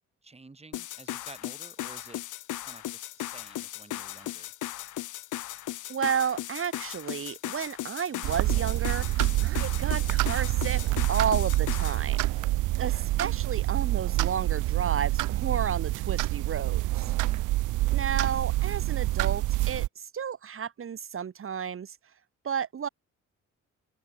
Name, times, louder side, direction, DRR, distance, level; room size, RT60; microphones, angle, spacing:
voice 1, 0.2-2.2 2.6-4.5 12.2-12.5 17.0-17.5, right 3 dB, 20° right, 5.2 m, -51 dB
sound 1, 0.7-12.0, left 14 dB, 80° left, 2.1 m, -37 dB
voice 2, 5.9-10.8 11.1-12.3 12.8-17.1 17.9-22.0 22.4-22.9, right 7 dB, 45° right, 1.8 m, -32 dB
sound 2, 8.2-19.9, right 17 dB, 85° right, 0.9 m, -27 dB
open air
cardioid pair, 90°, 30 cm